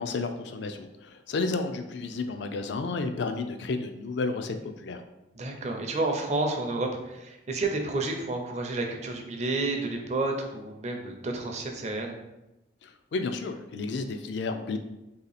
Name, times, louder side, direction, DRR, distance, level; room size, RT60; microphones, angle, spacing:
voice 1, 0.0-5.0 12.8-14.8, left 3 dB, 65° left, 7 dB, 0.4 m, -32 dB
voice 2, 5.3-12.2, right 2 dB, 35° right, 2 dB, 0.5 m, -30 dB
3.2 x 2.8 x 4.0 m, 0.96 s
head